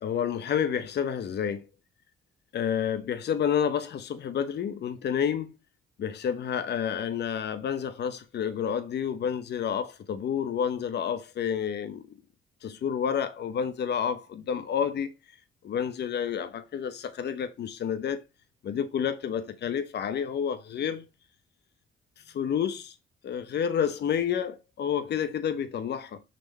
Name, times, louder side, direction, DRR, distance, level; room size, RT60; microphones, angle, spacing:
voice 1, 0.0-1.7 2.5-5.5 6.0-12.0 12.6-15.1 15.6-18.2 18.6-21.1 22.3-22.9 23.2-26.2, left 8 dB, 60° left, 1.0 m, -29 dB
6.2 x 4.4 x 4.2 m
cardioid pair, 90°, 20 cm